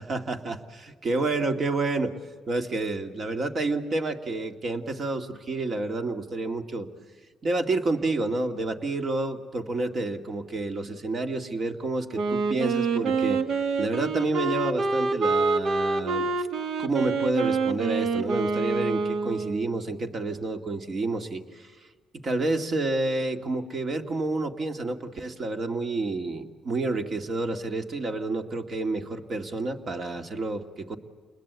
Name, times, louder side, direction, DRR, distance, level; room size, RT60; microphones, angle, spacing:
voice 1, 0.0-2.1 2.5-6.9 7.4-13.5 13.8-16.5 16.8-21.7 22.2-31.0, right 2 dB, 45° right, 6 dB, 2.3 m, -29 dB
Wind instrument woodwind instrument, 12.1-19.8, right 4 dB, 70° right, 1.4 m, -26 dB
28.5 x 21.0 x 8.2 m, 1.5 s
cardioid pair, 90°, 0 cm